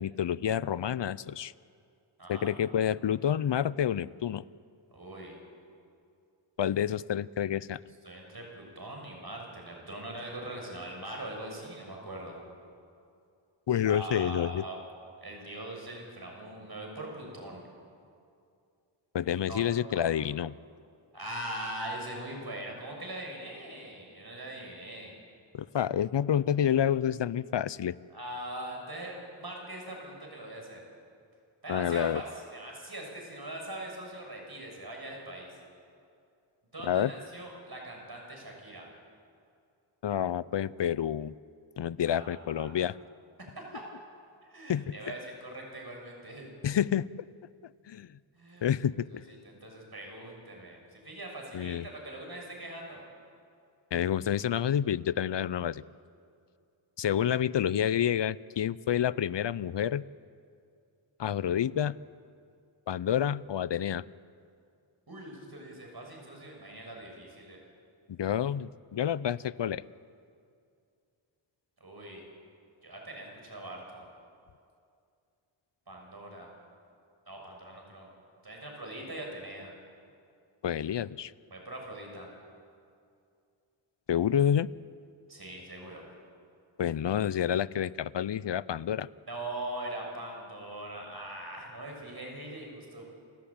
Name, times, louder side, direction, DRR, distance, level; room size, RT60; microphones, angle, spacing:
voice 1, 0.0-1.5 2.3-4.4 6.6-7.8 13.7-14.6 19.1-20.5 25.5-28.0 31.7-32.2 36.8-37.1 40.0-41.3 41.8-43.0 44.7-44.9 46.6-47.1 47.9-48.1 48.6-49.2 51.5-51.8 53.9-55.8 57.0-60.0 61.2-62.0 62.9-64.0 68.1-69.8 80.6-81.3 84.1-84.7 86.8-89.1, left 9 dB, 60° left, 19 dB, 0.6 m, -28 dB
voice 2, 2.2-2.5 4.9-5.3 8.0-12.4 13.9-14.8 15.2-17.6 19.5-20.1 21.1-25.1 28.1-30.8 31.6-35.6 36.7-38.9 42.1-42.7 43.4-43.9 44.4-46.5 48.3-48.7 49.1-53.0 65.1-67.6 71.8-72.2 72.8-74.0 75.9-76.5 77.3-78.1 78.4-79.7 81.5-82.3 85.3-86.0 89.3-93.1, right 1 dB, 50° right, 0 dB, 6.5 m, -41 dB
29.5 x 13.5 x 8.7 m, 2.4 s
wide cardioid pair, 80°, 49 cm